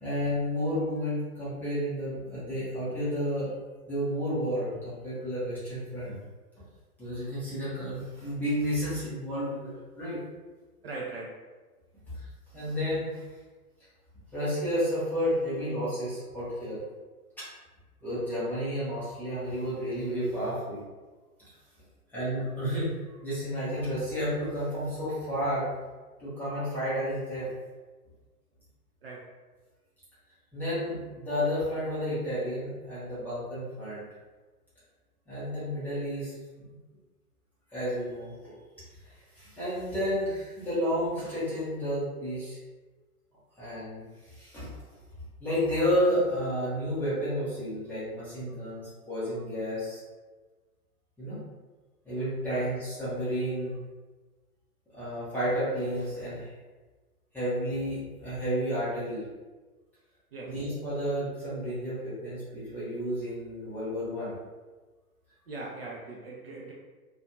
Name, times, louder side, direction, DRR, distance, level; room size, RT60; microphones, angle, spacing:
voice 1, 0.0-3.5 3.9-6.2 7.0-10.2 12.1-12.2 12.5-13.2 14.3-16.8 17.4-17.5 18.0-20.8 22.1-25.7 26.2-27.5 30.5-34.0 35.3-36.3 37.7-38.5 39.0-42.6 43.6-44.8 45.4-50.0 51.2-51.4 52.0-53.8 54.9-56.5 57.3-59.2 60.4-64.4, equal, 5° left, -13 dB, 0.6 m, -31 dB
voice 2, 10.8-11.3 29.0-29.2 52.5-52.6 60.3-60.5 65.5-66.7, right 3 dB, 45° right, -3 dB, 0.4 m, -39 dB
2.5 x 2.2 x 2.7 m, 1.3 s
figure-of-eight pair, 115°, 46 cm